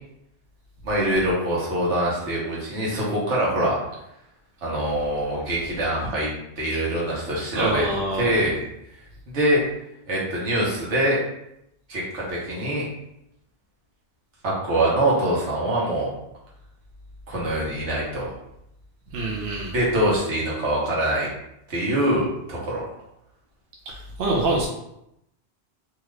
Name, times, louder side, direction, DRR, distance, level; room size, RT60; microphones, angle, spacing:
voice 1, 0.8-3.8 4.6-6.3 6.6-7.8 8.1-8.6 9.3-9.6 10.1-11.2 11.9-12.8 14.4-16.1 17.3-18.3 19.7-21.3 21.7-22.8, right 1 dB, 85° right, -5 dB, 1.4 m, -24 dB
voice 2, 7.5-8.3 19.1-19.7 23.9-24.7, right 2 dB, 70° right, -2 dB, 0.8 m, -25 dB
2.8 x 2.4 x 3.2 m, 0.81 s
omnidirectional pair, 1.2 m